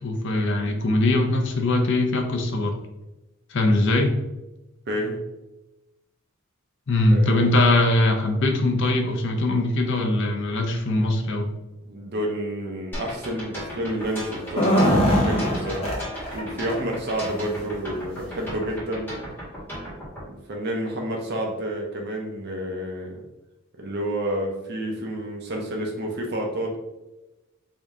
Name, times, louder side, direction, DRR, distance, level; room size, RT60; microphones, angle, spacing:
voice 1, 0.0-2.8 3.5-4.2 6.9-11.5, left 2 dB, 55° left, 3 dB, 0.6 m, -21 dB
voice 2, 4.9-5.2 7.1-7.5 11.8-15.9 16.3-19.2 20.3-23.2 23.8-26.8, right 1 dB, 50° right, 1 dB, 0.6 m, -29 dB
sound 1, 12.9-20.2, equal, 10° left, 1.4 m, -36 dB
sound 2, 14.4-16.4 16.7-16.8 17.2-17.4 18.2-18.3 18.7-18.8, equal, 25° left, 0.9 m, -21 dB
3.5 x 2.7 x 3.5 m, 1.0 s
head